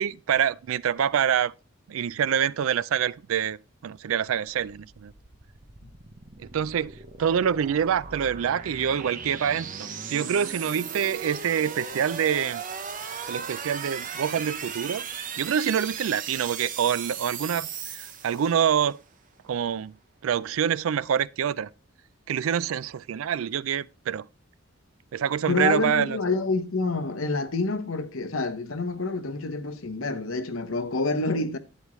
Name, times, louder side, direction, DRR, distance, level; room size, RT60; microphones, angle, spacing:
voice 1, 0.0-1.5 1.9-3.6 3.8-5.1 6.4-9.7 10.1-12.6 13.3-15.0 15.4-19.0 19.5-19.9 20.2-21.7 22.3-24.3 25.1-26.2, right 8 dB, 85° right, 0.4 m, -26 dB
sound 1, 4.5-18.9, right 6 dB, 40° right, 0.9 m, -37 dB
voice 2, 25.5-31.6, left 3 dB, 85° left, 1.0 m, -27 dB
11.5 x 8.9 x 3.1 m
head